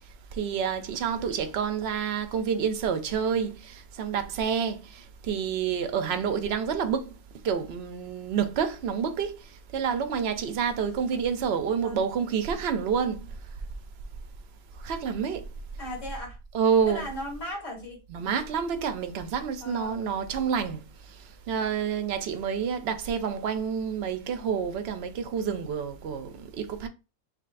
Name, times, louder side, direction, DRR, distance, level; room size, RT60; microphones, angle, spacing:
voice 1, 0.4-7.1 7.4-9.3 9.7-13.3 14.8-15.4 16.5-17.1 18.1-20.8 21.5-26.9, right 7 dB, 60° right, 0.7 m, -28 dB
voice 2, 15.8-16.4 16.9-18.0 19.6-20.1, left 1 dB, 55° left, 2.0 m, -37 dB
6.0 x 3.1 x 2.5 m
omnidirectional pair, 1.5 m